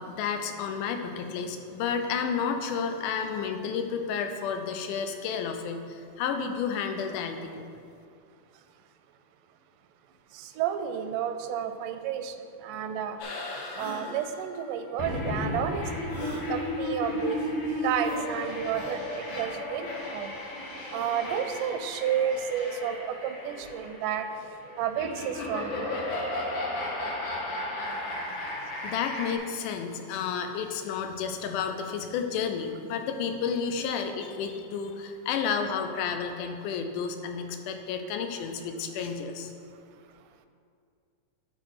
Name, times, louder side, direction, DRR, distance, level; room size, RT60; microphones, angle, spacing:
voice 1, 0.0-7.7 27.9-28.4 28.8-39.5, left 6 dB, 85° left, 6 dB, 2.2 m, -31 dB
voice 2, 10.4-12.3 12.6-13.2 13.8-17.4 17.8-19.9 20.1-20.3 20.9-24.3 24.8-26.0, right 9 dB, 85° right, 8 dB, 2.1 m, -31 dB
sound 1, 12.7-12.8 13.7-14.1 16.1-16.5 18.0-18.2 18.7-19.0 20.8-21.2, left 2 dB, 55° left, 0.8 m, -40 dB
sound 2, 13.2-29.4, left 1 dB, 70° left, 2.4 m, -34 dB
10.5 x 4.0 x 5.7 m, 2.4 s
omnidirectional pair, 3.6 m